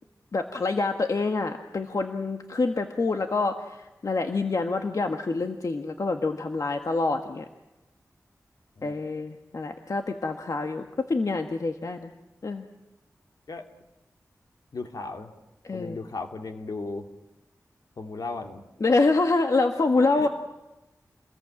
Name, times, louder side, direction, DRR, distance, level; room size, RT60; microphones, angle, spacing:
voice 1, 0.3-7.5 8.8-12.1 12.4-12.6 15.7-16.0 18.8-20.3, left 3 dB, 65° left, 5 dB, 1.6 m, -26 dB
voice 2, 14.7-15.3 15.7-17.1 18.0-18.6 20.2-20.3, left 3 dB, 85° left, 4 dB, 2.5 m, -36 dB
28.5 x 21.0 x 8.9 m, 1.0 s
wide cardioid pair, 60°, 6 cm